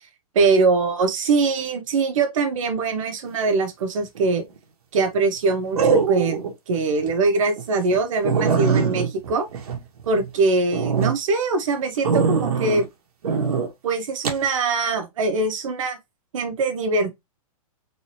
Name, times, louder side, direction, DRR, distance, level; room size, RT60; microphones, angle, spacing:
voice 1, 0.3-4.4 4.9-9.5 10.1-12.8 13.8-16.0 16.3-17.2, right 3 dB, 60° right, 1.4 m, -22 dB
sound 1, 4.2-4.6 5.8-6.5 7.0-7.1 7.6-7.7 7.9-8.0 8.2-10.3 10.7-11.1 12.0-12.8 13.2-13.7 14.2-14.4, right 5 dB, 80° right, 1.5 m, -22 dB
3.8 x 3.4 x 2.9 m
hypercardioid pair, 165°, 19 cm